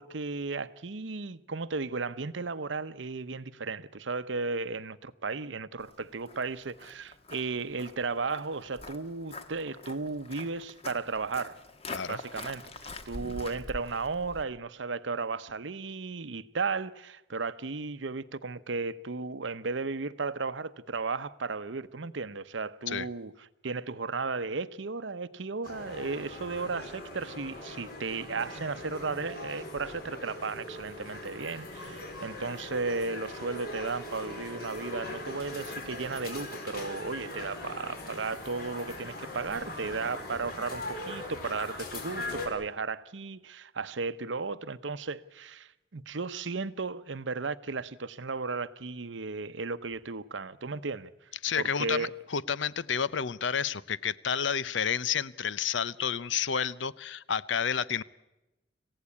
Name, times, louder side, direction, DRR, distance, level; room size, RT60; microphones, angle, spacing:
voice 1, 0.0-11.6 12.1-51.1 51.6-52.1, right 4 dB, 80° right, 0.8 m, -35 dB
Walk footsteps, 5.8-14.4, left 2 dB, 30° left, 1.5 m, -45 dB
sound 1, 25.6-42.5, left 2 dB, 55° left, 4.9 m, -41 dB
voice 2, 51.4-58.0, left 7 dB, 80° left, 0.7 m, -30 dB
26.5 x 16.0 x 8.4 m
head